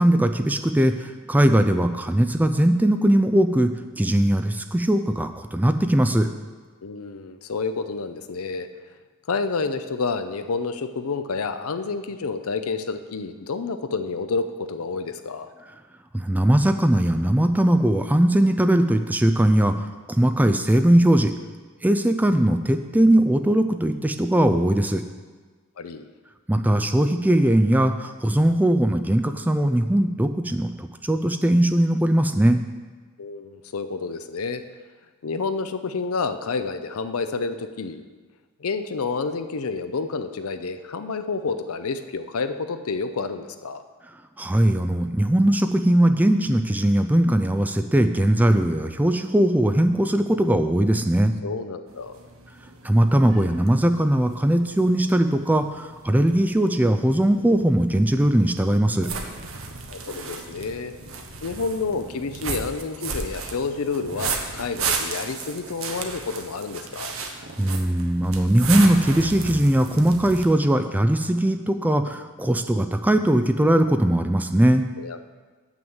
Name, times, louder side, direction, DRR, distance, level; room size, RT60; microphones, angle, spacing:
voice 1, 0.0-3.7 4.0-6.3 16.1-21.3 21.8-25.0 26.5-32.6 44.4-51.3 52.8-59.1 67.6-74.8, right 1 dB, 5° right, 8 dB, 0.4 m, -20 dB
voice 2, 6.8-8.7 9.3-15.5 25.8-26.1 33.2-34.6 35.2-38.1 38.6-43.8 51.4-52.2 59.9-60.9 61.4-67.1 75.0-75.3, left 4 dB, 75° left, 9 dB, 0.6 m, -29 dB
sound 1, 51.9-70.5, right 4 dB, 65° right, 1.0 m, -34 dB
7.8 x 6.1 x 7.1 m, 1.4 s
head